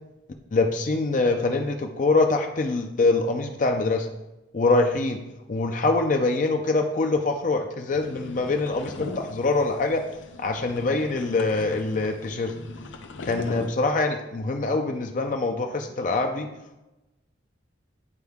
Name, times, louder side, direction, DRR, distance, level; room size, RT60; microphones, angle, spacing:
voice 1, 0.5-4.1 4.5-5.2 5.5-10.0 10.4-12.5 13.2-16.5, left 3 dB, 45° left, 4 dB, 0.5 m, -24 dB
sound 1, 7.9-13.7, left 2 dB, 85° left, 0.7 m, -40 dB
9.8 x 4.7 x 3.5 m, 0.96 s
head